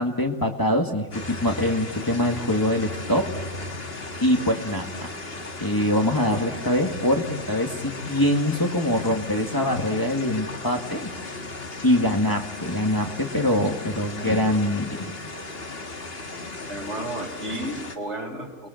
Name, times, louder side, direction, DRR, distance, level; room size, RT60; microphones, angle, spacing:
voice 1, 0.0-3.3 4.2-5.1 5.6-11.3 11.8-15.1, left 1 dB, 15° left, 2 dB, 2.0 m, -24 dB
sound 1, 1.1-18.0, left 2 dB, 55° left, 2.2 m, -36 dB
voice 2, 16.7-18.7, right 1 dB, 75° right, 2 dB, 5.4 m, -32 dB
30.0 x 21.0 x 7.9 m, 1.3 s
omnidirectional pair, 1.2 m